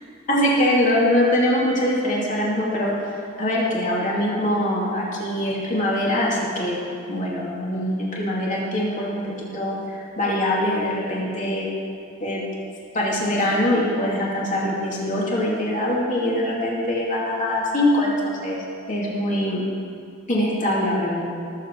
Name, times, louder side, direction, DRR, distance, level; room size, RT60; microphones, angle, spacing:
voice 1, 0.3-2.9 3.4-6.8 7.1-9.8 10.2-11.7 12.2-12.4 12.9-18.6 18.9-19.6 20.3-21.2, left 1 dB, 40° left, -5 dB, 2.8 m, -23 dB
19.0 x 8.0 x 4.7 m, 2.4 s
head